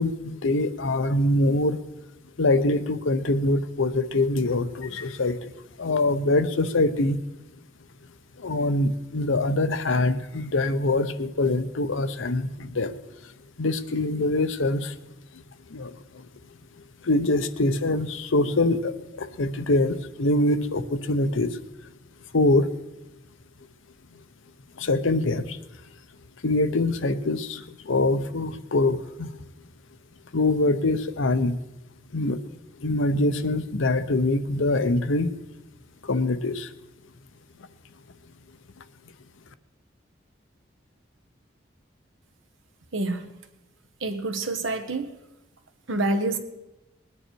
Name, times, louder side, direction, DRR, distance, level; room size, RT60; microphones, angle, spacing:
voice 1, 0.0-1.8 2.4-5.5 5.8-7.2 8.4-13.0 13.6-15.0 15.7-15.9 17.0-21.6 22.3-22.7 24.8-25.6 26.4-29.3 30.3-31.6 32.1-32.4 32.8-35.4 36.0-36.7, left 2 dB, 85° left, 11 dB, 0.8 m, -24 dB
voice 2, 42.9-43.3 44.0-45.1 45.9-46.4, right 2 dB, 85° right, 7 dB, 1.3 m, -27 dB
20.0 x 9.7 x 4.6 m, 0.96 s
head